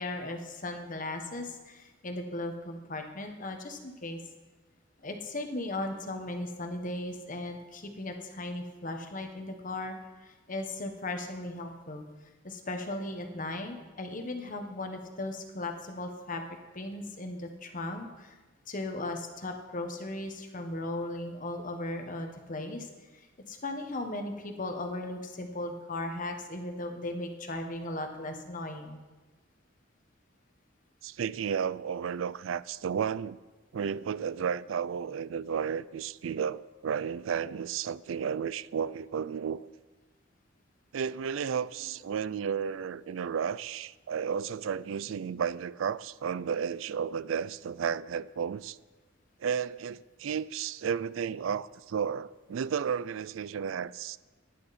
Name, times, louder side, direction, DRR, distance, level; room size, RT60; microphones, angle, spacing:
voice 1, 0.0-4.2 5.0-10.0 10.2-12.1 12.4-16.4 16.7-18.3 18.7-22.9 23.5-29.0, left 2 dB, 40° left, 1.3 m, -37 dB
voice 2, 31.0-33.4 33.7-39.7 40.9-48.8 49.4-54.2, right 7 dB, 80° right, 0.4 m, -33 dB
16.5 x 10.5 x 4.2 m
head